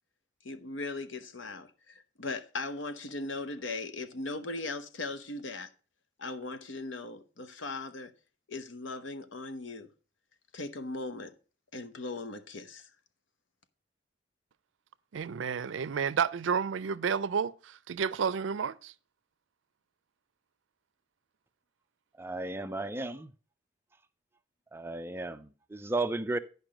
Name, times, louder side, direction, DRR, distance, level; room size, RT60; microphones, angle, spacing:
voice 1, 0.4-5.7 6.2-8.1 8.5-9.9 10.5-11.3 11.7-12.9, left 3 dB, 80° left, 0.9 m, -38 dB
voice 2, 15.1-18.9, right 6 dB, 80° right, 0.4 m, -31 dB
voice 3, 22.2-23.3 24.7-26.4, right 2 dB, 10° right, 0.4 m, -34 dB
10.5 x 5.3 x 5.0 m
head